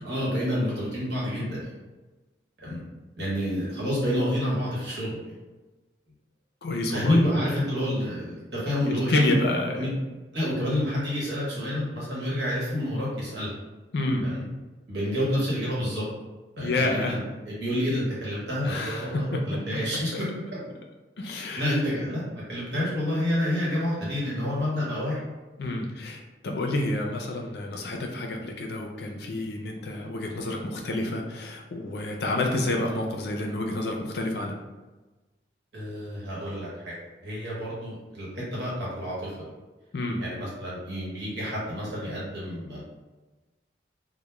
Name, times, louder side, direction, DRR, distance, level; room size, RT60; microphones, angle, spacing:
voice 1, 0.0-1.7 2.6-2.8 3.2-5.2 6.9-9.2 9.7-9.9 10.3-13.5 14.2-14.4 14.9-16.0 16.6-17.2 17.5-20.3 21.6-22.2 22.5-25.2 35.7-36.9 37.2-39.4 40.2-42.8, left 1 dB, 75° right, -6 dB, 1.0 m, -28 dB
voice 2, 6.6-7.2 8.9-10.0 13.9-14.3 16.6-17.2 18.6-19.8 20.1-20.2 21.2-21.8 25.6-34.6 39.9-40.2, left 2 dB, 65° left, 1 dB, 0.4 m, -29 dB
2.2 x 2.1 x 3.0 m, 1.2 s
head